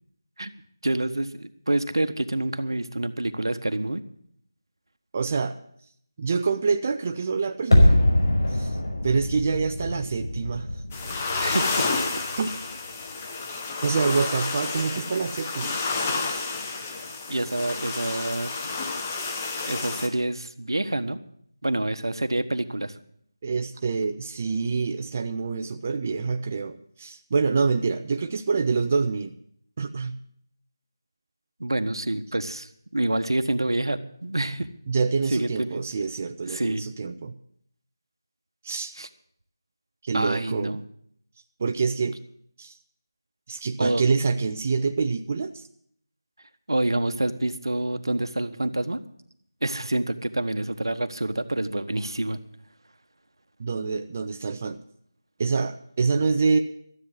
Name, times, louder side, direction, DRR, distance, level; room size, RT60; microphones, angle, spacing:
voice 1, 0.8-4.0 11.4-11.8 17.3-18.5 19.7-21.2 21.6-22.9 31.6-34.7 35.3-35.9 36.5-36.8 39.0-39.1 40.1-40.8 43.8-44.0 46.7-49.0 49.6-52.4, right 1 dB, 80° right, 10 dB, 1.2 m, -27 dB
voice 2, 5.1-5.6 6.2-8.0 8.5-8.8 9.0-10.8 12.4-12.5 13.8-15.8 16.3-16.4 18.1-18.3 23.4-29.3 29.8-30.2 34.9-37.3 38.6-38.9 40.0-40.8 41.6-42.2 42.6-42.7 43.5-45.7 53.6-54.8 55.4-56.6, right 4 dB, 25° right, 6 dB, 0.5 m, -26 dB
sound 1, 7.7-12.6 12.9-13.0, left 1 dB, 65° left, 5.3 m, -23 dB
sound 2, 10.9-20.1, left 4 dB, 20° left, 0.9 m, -30 dB
13.0 x 7.5 x 9.5 m, 0.66 s
figure-of-eight pair, 170°, 2 cm